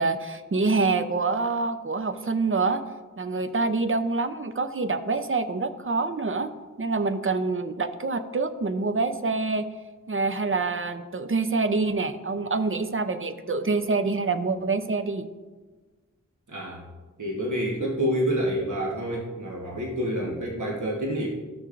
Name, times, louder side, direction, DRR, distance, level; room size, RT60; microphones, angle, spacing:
voice 1, 0.0-2.8 3.2-6.5 6.8-9.7 10.1-15.3, right 3 dB, 40° right, 10 dB, 0.6 m, -26 dB
voice 2, 16.5-16.8 17.2-21.3, equal, 65° right, -3 dB, 1.3 m, -28 dB
13.5 x 6.6 x 2.5 m, 1.3 s
wide cardioid pair, 50°, 32 cm